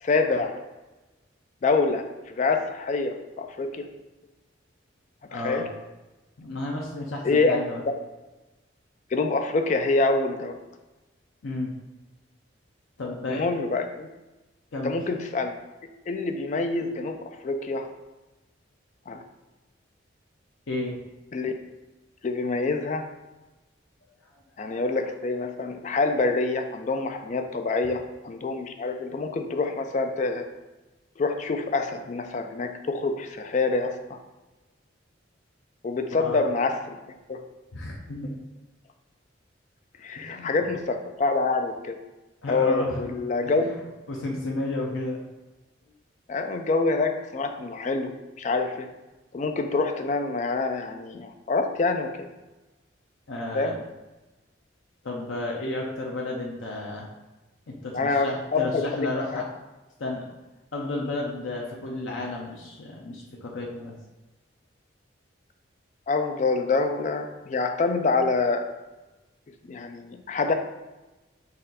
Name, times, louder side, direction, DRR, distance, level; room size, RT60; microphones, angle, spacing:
voice 1, 0.0-0.6 1.6-3.9 5.3-5.7 7.2-8.0 9.1-10.6 13.3-14.1 14.8-15.5 16.1-17.9 19.1-19.2 21.3-21.5 22.2-23.1 24.6-30.5 31.2-34.2 35.8-37.0 37.3-37.5 40.0-42.0 42.5-43.7 46.3-48.9 49.3-52.3 53.5-53.8 57.9-59.4 66.1-68.7 69.6-70.5, left 3 dB, 40° left, 6 dB, 0.3 m, -26 dB
voice 2, 5.3-5.7 6.4-7.8 11.4-11.7 13.0-13.5 14.7-14.9 20.7-21.0 36.2-36.4 37.7-38.3 40.1-40.6 42.4-43.0 43.4-43.8 44.1-45.2 53.3-53.8 55.0-57.1 57.7-59.5 60.0-60.2 60.7-63.9, left 2 dB, 80° left, -1 dB, 0.6 m, -32 dB
4.2 x 2.5 x 3.9 m, 1.1 s
head